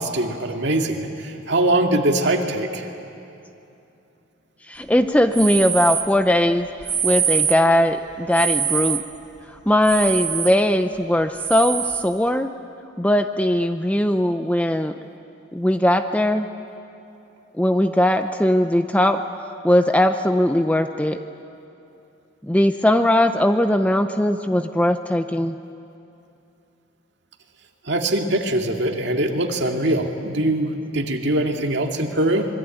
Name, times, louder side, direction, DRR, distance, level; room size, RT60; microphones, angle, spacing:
voice 1, 0.0-2.9 27.9-32.5, right 1 dB, 55° right, 2 dB, 2.3 m, -22 dB
voice 2, 4.7-6.7 7.0-9.0 9.7-12.5 13.0-14.9 15.5-16.4 17.6-19.2 19.6-21.2 22.5-25.5, left 1 dB, 5° left, 8 dB, 0.6 m, -19 dB
sound 1, 5.3-6.1 6.8-7.7 8.3-9.1 9.8-10.6 11.3-12.1, right 7 dB, 20° right, 0.9 m, -24 dB
26.0 x 22.5 x 9.1 m, 2.7 s
head